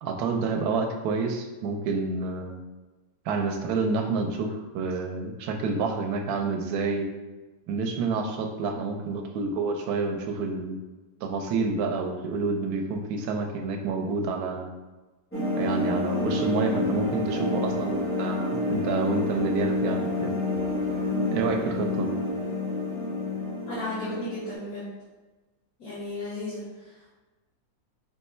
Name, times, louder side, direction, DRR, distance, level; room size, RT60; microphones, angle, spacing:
voice 1, 0.0-2.6 3.3-7.0 7.7-10.8 11.2-14.7 15.6-20.3 21.3-22.2, right 4 dB, 85° right, 4 dB, 1.1 m, -28 dB
sound 1, 15.3-24.5, left 2 dB, 15° left, 0.6 m, -28 dB
voice 2, 23.7-24.9 25.8-27.1, left 1 dB, 80° left, -9 dB, 1.7 m, -35 dB
4.1 x 2.2 x 4.2 m, 1.2 s
omnidirectional pair, 1.6 m